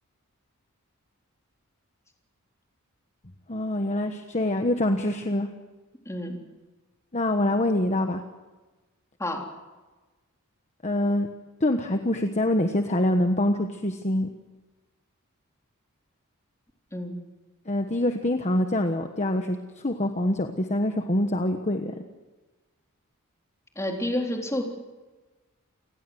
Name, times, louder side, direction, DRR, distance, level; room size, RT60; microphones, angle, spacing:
voice 1, 3.5-5.5 7.1-8.2 10.8-11.3 11.6-14.3 17.7-22.0, left 1 dB, 30° left, 5 dB, 1.3 m, -25 dB
voice 2, 6.1-6.4 9.2-9.4 16.9-17.2 23.8-24.6, left 1 dB, 15° left, 1 dB, 3.9 m, -29 dB
29.5 x 19.0 x 7.9 m, 1.2 s
head